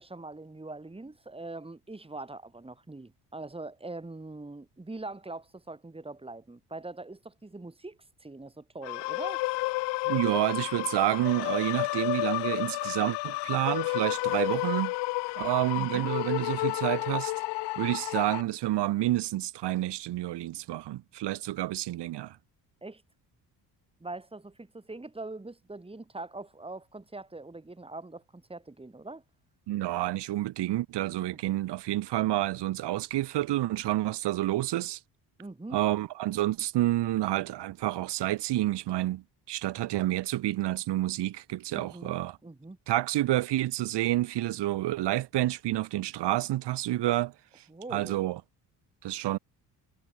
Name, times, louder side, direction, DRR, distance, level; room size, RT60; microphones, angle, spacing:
voice 1, 0.0-9.4 15.8-16.1 22.8-23.0 24.0-29.2 31.3-31.5 35.4-35.8 41.7-42.1 42.4-42.8 47.7-48.3, right 2 dB, 15° right, 3.4 m, -42 dB
sound 1, 8.8-18.4, left 22 dB, 90° left, 1.0 m, -31 dB
voice 2, 10.1-14.9 15.4-17.3 17.8-22.4 29.7-35.0 35.7-42.4 42.9-47.3 47.9-48.4 49.0-49.4, right 15 dB, 80° right, 3.7 m, -29 dB
supercardioid pair, 80°, 41 cm